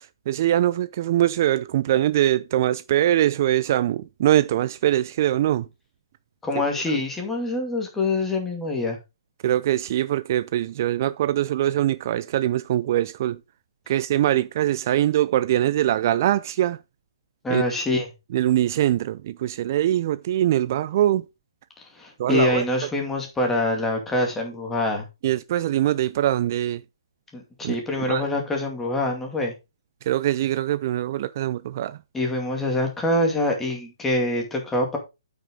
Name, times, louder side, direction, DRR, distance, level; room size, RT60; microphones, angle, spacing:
voice 1, 0.0-5.7 6.9-7.0 9.4-13.4 13.9-16.8 17.5-17.6 18.3-21.2 22.2-22.6 25.2-26.8 27.6-28.3 30.0-32.0, right 12 dB, 40° right, 0.3 m, -23 dB
voice 2, 6.4-9.0 17.4-18.1 21.8-25.0 27.3-29.5 32.1-35.0, left 2 dB, 10° left, 2.4 m, -25 dB
8.7 x 5.9 x 3.8 m
hypercardioid pair, 145°, 2 cm